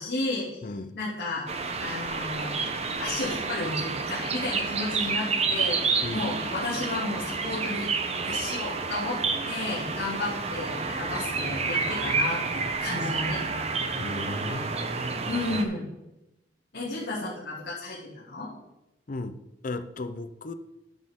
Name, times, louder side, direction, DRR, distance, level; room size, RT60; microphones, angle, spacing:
voice 1, 0.0-0.6 0.9-1.5 1.8-2.6 3.0-7.9 8.2-9.2 9.5-13.4 15.3-15.9 16.7-18.5, left 2 dB, 75° left, -8 dB, 2.6 m, -32 dB
voice 2, 0.6-0.9 2.4-2.5 6.0-6.3 14.0-14.7 19.1-19.4 19.6-20.5, left 2 dB, 50° left, 10 dB, 0.6 m, -35 dB
sound 1, 1.5-15.7, right 4 dB, 35° right, 0.8 m, -29 dB
12.0 x 6.4 x 3.7 m, 0.92 s
head